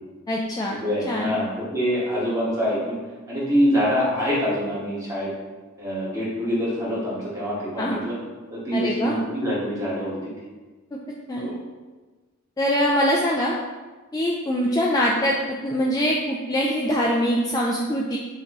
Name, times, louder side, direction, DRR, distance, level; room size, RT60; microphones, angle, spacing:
voice 1, 0.3-0.8 1.1-1.4 7.8-8.0 8.7-9.2 10.9-11.0 11.3-11.5 12.6-13.5 14.1-18.2, equal, 15° left, -3 dB, 0.3 m, -23 dB
voice 2, 0.8-3.0 3.3-5.3 5.8-8.2 8.5-10.3 11.4-11.5, equal, 15° right, -8 dB, 1.4 m, -25 dB
5.8 x 2.9 x 3.0 m, 1.3 s
head